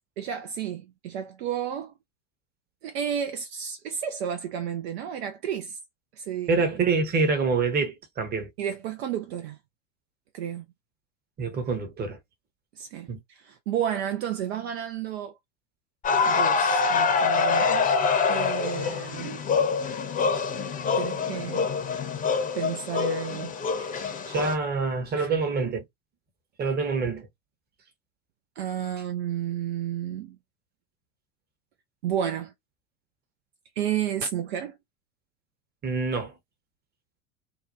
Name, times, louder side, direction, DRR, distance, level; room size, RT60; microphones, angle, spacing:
voice 1, 0.2-1.9 2.8-5.8 6.2-6.5 8.6-9.6 10.3-10.6 12.8-15.4 16.2-17.9 18.3-19.3 21.0-21.7 22.5-23.5 23.8-24.3 25.2-25.3 28.6-30.4 32.0-32.5 33.8-34.8, right 9 dB, 55° right, 0.6 m, -32 dB
voice 2, 6.5-8.5 11.4-12.2 13.1-13.2 24.3-25.8 26.6-27.3 35.8-36.3, right 4 dB, 25° right, 1.0 m, -26 dB
sound 1, 16.0-24.5, left 5 dB, 20° left, 0.8 m, -25 dB
2.8 x 2.2 x 2.5 m
figure-of-eight pair, 85°, 38 cm